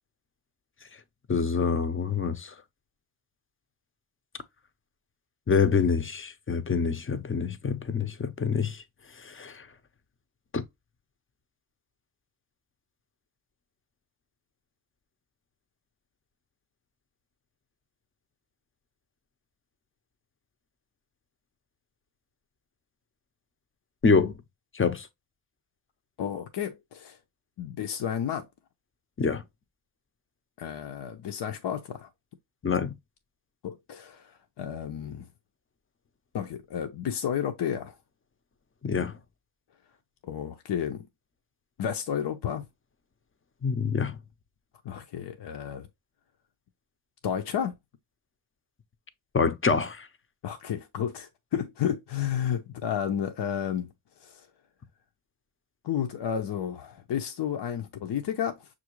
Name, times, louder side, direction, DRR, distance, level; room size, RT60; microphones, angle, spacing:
voice 1, 1.3-2.5 5.5-8.8 9.2-9.7 10.5-10.6 24.0-24.3 24.7-25.1 29.2-29.4 32.6-32.9 38.8-39.2 43.6-44.2 49.3-50.1, left 5 dB, 30° left, 0.7 m, -26 dB
voice 2, 26.2-27.2 27.6-28.5 30.6-32.1 33.6-35.3 36.3-38.0 40.2-41.1 41.8-42.6 44.8-45.9 47.2-47.8 50.4-53.9 54.2-54.5 55.8-58.7, left 9 dB, 65° left, 0.7 m, -32 dB
5.9 x 2.5 x 3.0 m
cardioid pair, 60°, 45 cm